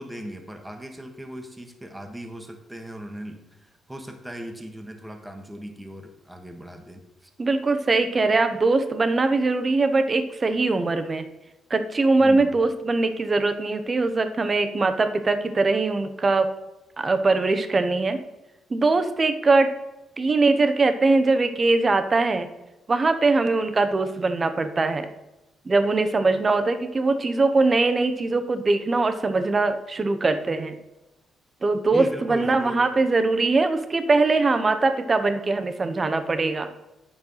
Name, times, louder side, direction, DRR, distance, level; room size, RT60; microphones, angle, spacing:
voice 1, 0.0-7.3 12.2-12.5 31.9-32.9, equal, 5° right, 4 dB, 1.4 m, -38 dB
voice 2, 7.4-11.2 11.7-16.5 17.0-18.2 18.7-19.7 20.2-22.5 22.9-25.1 25.6-30.8 31.6-36.7, right 3 dB, 30° right, 9 dB, 0.9 m, -22 dB
9.1 x 4.6 x 5.6 m, 1.0 s
cardioid pair, 90°, 0 cm